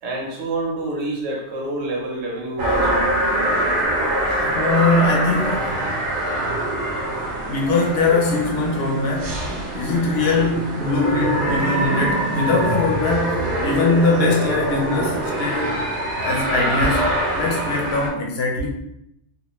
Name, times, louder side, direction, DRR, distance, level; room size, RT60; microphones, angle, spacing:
voice 1, 0.0-3.1 4.3-4.4, right 2 dB, 85° right, -3 dB, 1.0 m, -28 dB
sound 1, 2.6-18.1, right 1 dB, 55° right, 0.7 m, -24 dB
voice 2, 4.4-5.8 7.5-9.4 9.7-15.8 16.2-18.7, left 3 dB, 65° left, -1 dB, 0.7 m, -21 dB
2.4 x 2.1 x 2.9 m, 0.79 s
omnidirectional pair, 1.3 m